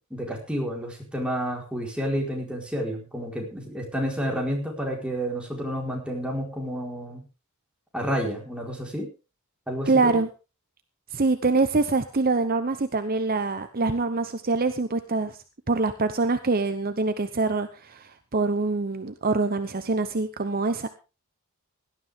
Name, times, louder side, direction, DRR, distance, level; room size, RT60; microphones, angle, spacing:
voice 1, 0.1-7.2 7.9-9.1 9.7-10.2, equal, 5° right, -1 dB, 4.5 m, -30 dB
voice 2, 9.9-10.3 11.1-15.4 15.7-20.9, right 3 dB, 40° right, 10 dB, 0.9 m, -25 dB
17.5 x 12.5 x 3.6 m, 0.31 s
head